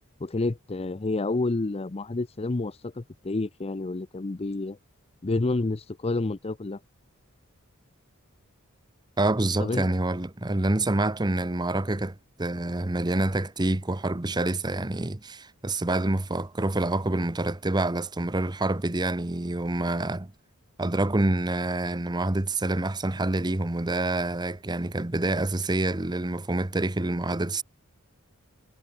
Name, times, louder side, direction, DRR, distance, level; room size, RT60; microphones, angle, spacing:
voice 1, 0.2-4.8 5.2-6.8 9.6-9.9, left 2 dB, 30° left, 0.6 m, -29 dB
voice 2, 9.2-20.3 20.8-27.6, right 2 dB, 20° right, 0.9 m, -27 dB
head